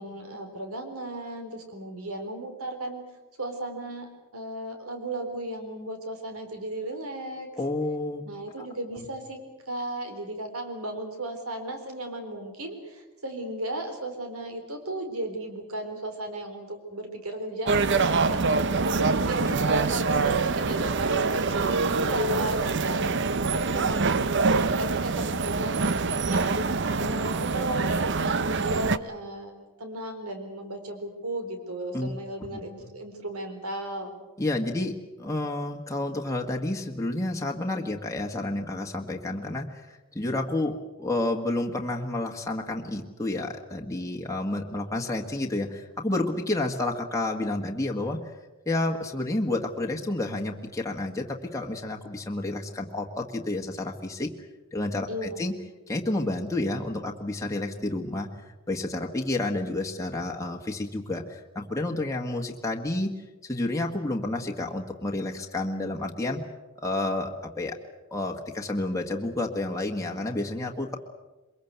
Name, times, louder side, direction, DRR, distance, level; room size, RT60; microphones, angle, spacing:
voice 1, 0.0-3.0 3.4-7.5 8.2-9.4 9.7-29.5 29.8-34.2 55.1-55.4, right 1 dB, 75° right, 6 dB, 4.0 m, -35 dB
voice 2, 7.6-8.2 8.6-8.7 9.0-9.1 19.5-19.9 31.9-32.1 32.4-32.5 32.8-32.9 34.4-48.2 48.6-54.3 54.7-55.5 55.9-58.3 58.7-63.1 63.4-66.4 66.8-67.8 68.1-71.0, left 2 dB, 15° left, 0 dB, 1.6 m, -30 dB
sound 1, 17.7-29.0, right 4 dB, 50° right, 0.8 m, -25 dB
23.0 x 22.0 x 8.1 m, 1.1 s
head